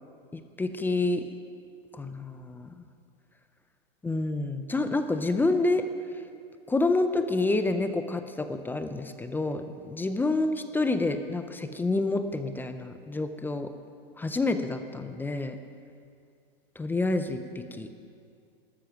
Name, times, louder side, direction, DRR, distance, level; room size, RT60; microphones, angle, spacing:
voice 1, 0.3-1.2 1.9-2.7 4.0-5.9 6.7-13.7 14.2-15.6 16.8-17.4 17.7-17.9, left 2 dB, 5° left, 9 dB, 0.5 m, -28 dB
15.5 x 13.5 x 5.9 m, 2.3 s
hypercardioid pair, 130°, 31 cm